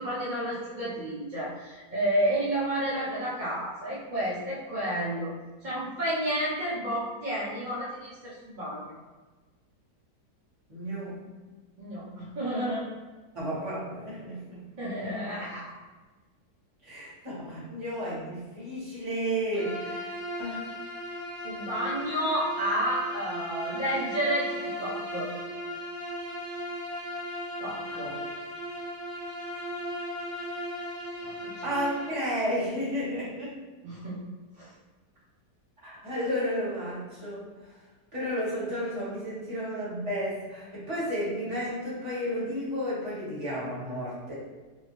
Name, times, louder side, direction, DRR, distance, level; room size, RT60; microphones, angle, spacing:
voice 1, 0.0-5.3 5.6-8.8 11.8-12.8 14.8-15.7 21.4-25.3 27.6-28.1 31.2-31.7 33.8-34.2 34.6-34.7, right 1 dB, 55° right, -9 dB, 0.5 m, -31 dB
voice 2, 10.7-11.2 13.3-14.6 16.8-20.1 20.4-20.6 28.0-28.1 31.6-33.6 35.8-37.7 38.1-44.3, equal, 20° right, -10 dB, 1.3 m, -32 dB
Bowed string instrument, 19.5-32.3, equal, 75° right, 1.3 m, -37 dB
3.0 x 2.7 x 2.9 m, 1.3 s
omnidirectional pair, 1.8 m